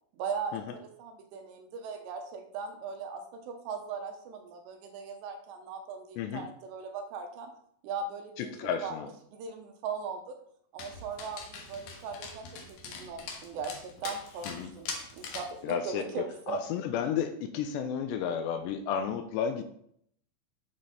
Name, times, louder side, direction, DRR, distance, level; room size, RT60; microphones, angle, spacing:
voice 1, 0.1-7.5 7.8-9.0 9.3-10.3 10.7-16.6, right 5 dB, 80° right, 5 dB, 3.0 m, -39 dB
voice 2, 6.2-6.5 8.4-9.1 14.5-14.7 15.6-19.6, left 8 dB, 80° left, 9 dB, 2.7 m, -32 dB
Dog, 10.8-15.6, left 4 dB, 60° left, 2.4 m, -42 dB
8.7 x 7.5 x 4.1 m, 0.67 s
omnidirectional pair, 5.3 m